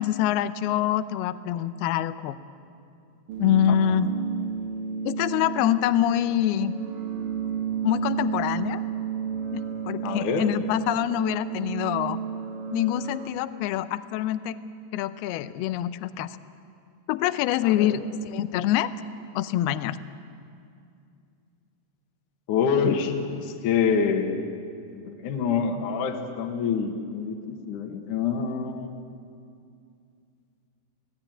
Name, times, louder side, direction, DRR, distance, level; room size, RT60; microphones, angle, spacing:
voice 1, 0.0-2.4 3.4-4.1 5.0-6.8 7.8-8.8 9.5-12.2 12.7-14.6 14.9-16.4 17.1-18.9 19.4-20.0, left 12 dB, 80° left, 12 dB, 2.4 m, -25 dB
sound 1, 3.3-13.3, right 8 dB, 60° right, 2.8 m, -32 dB
voice 2, 10.0-10.5 17.6-18.0 22.5-24.3 24.9-28.9, left 6 dB, 60° left, 2 dB, 2.4 m, -26 dB
28.5 x 18.0 x 8.9 m, 2.4 s
omnidirectional pair, 5.2 m